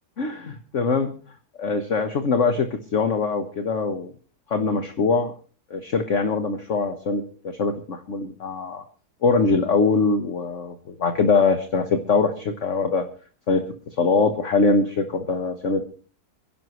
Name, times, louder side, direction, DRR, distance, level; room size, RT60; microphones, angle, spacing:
voice 1, 0.2-1.1 1.6-4.1 4.5-5.3 5.7-8.8 9.2-13.1 13.5-13.6 14.0-15.8, left 4 dB, 50° left, 7 dB, 1.5 m, -22 dB
27.5 x 11.0 x 3.1 m, 0.38 s
omnidirectional pair, 1.7 m